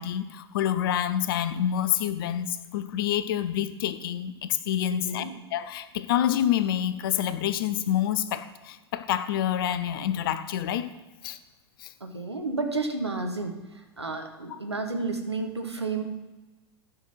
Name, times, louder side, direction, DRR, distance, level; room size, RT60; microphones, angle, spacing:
voice 1, 0.0-5.3 5.5-10.9 11.2-11.4 11.8-11.9 14.5-14.6, left 10 dB, 60° left, 13 dB, 0.6 m, -27 dB
voice 2, 4.9-5.3 12.0-13.6 14.0-16.0, right 3 dB, 90° right, 5 dB, 1.1 m, -31 dB
10.5 x 6.1 x 5.7 m, 1.1 s
figure-of-eight pair, 85°, 14 cm